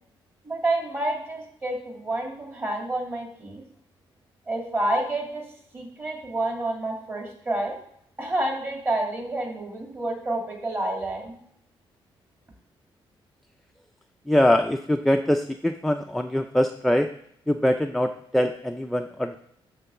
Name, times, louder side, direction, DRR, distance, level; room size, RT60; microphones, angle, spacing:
voice 1, 0.4-3.6 4.5-5.4 5.7-7.8 8.2-11.4, right 2 dB, 25° right, 0 dB, 2.4 m, -29 dB
voice 2, 14.3-17.1 17.5-19.4, left 1 dB, ahead, 5 dB, 0.4 m, -23 dB
11.5 x 3.9 x 6.9 m, 0.70 s
cardioid pair, 145°, 9 cm